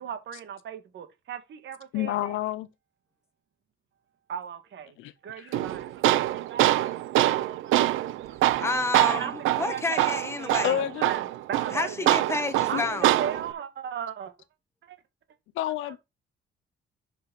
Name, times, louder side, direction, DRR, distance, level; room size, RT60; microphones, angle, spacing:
voice 1, 0.0-2.1 4.3-4.9 5.2-7.2 7.6-8.0 8.3-8.7 9.1-10.7 11.0-11.2 11.5-12.1 12.7-14.3 14.9-15.0, right 8 dB, 70° right, 1.6 m, -38 dB
voice 2, 1.9-2.7 5.0-5.6 10.6-11.1 12.7-12.9 15.5-16.0, left 13 dB, 90° left, 0.6 m, -30 dB
Tools, 5.5-13.5, right 15 dB, 90° right, 0.6 m, -25 dB
voice 3, 8.6-10.7 11.7-13.1, left 2 dB, 15° left, 1.3 m, -30 dB
5.4 x 5.3 x 6.0 m
cardioid pair, 90°, 20 cm